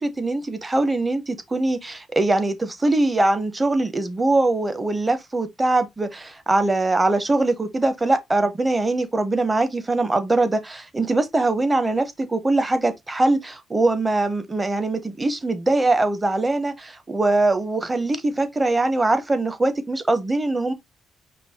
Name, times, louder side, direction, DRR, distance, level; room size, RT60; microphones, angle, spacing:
voice 1, 0.0-20.7, right 2 dB, 20° right, 0.9 m, -22 dB
5.3 x 2.4 x 4.1 m
cardioid pair, 105°, 0 cm